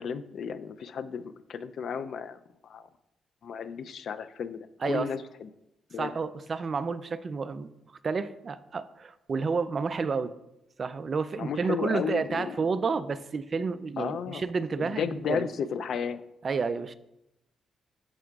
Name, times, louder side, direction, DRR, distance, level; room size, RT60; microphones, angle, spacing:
voice 1, 0.0-2.9 3.4-5.5 5.9-6.1 11.4-12.6 14.0-14.5 14.8-16.2, left 7 dB, 60° left, 12 dB, 0.3 m, -33 dB
voice 2, 6.0-7.7 8.0-10.3 10.8-15.4 16.4-16.9, right 5 dB, 35° right, 13 dB, 0.3 m, -30 dB
12.0 x 4.7 x 2.3 m, 0.88 s
cardioid pair, 130°, 0 cm